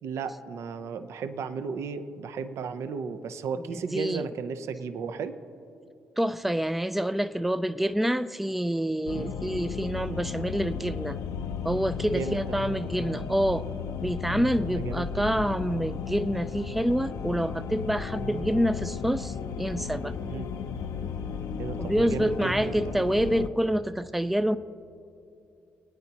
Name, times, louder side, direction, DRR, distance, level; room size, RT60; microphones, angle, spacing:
voice 1, 0.0-5.4 9.1-9.4 12.0-12.6 14.7-15.2 18.1-18.6 20.2-20.5 21.6-22.9, right 5 dB, 70° right, 10 dB, 0.7 m, -35 dB
voice 2, 3.9-4.3 6.2-11.2 11.6-13.7 14.0-20.1 21.8-24.6, equal, 5° right, 13 dB, 0.4 m, -27 dB
sound 1, 9.1-23.5, left 6 dB, 75° left, 0.6 m, -34 dB
28.0 x 9.5 x 2.9 m, 2.6 s
supercardioid pair, 70°, 5 cm